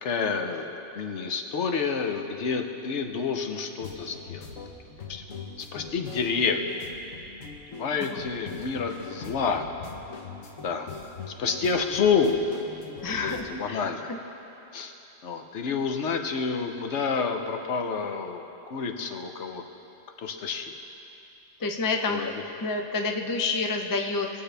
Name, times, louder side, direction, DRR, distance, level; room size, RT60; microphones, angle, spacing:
voice 1, 0.0-4.5 5.1-5.2 5.6-6.7 7.8-9.6 10.6-11.0 11.4-12.4 13.1-14.1 14.7-14.9 15.2-18.4 18.7-19.6 20.2-20.8 22.1-22.3, left 5 dB, 65° left, 5 dB, 1.0 m, -28 dB
sound 1, 3.8-13.4, left 4 dB, 90° left, 1.3 m, -42 dB
voice 2, 13.0-14.2 21.6-22.3 22.6-24.4, left 3 dB, 30° left, 3 dB, 0.4 m, -29 dB
20.5 x 7.6 x 3.3 m, 2.9 s
omnidirectional pair, 1.3 m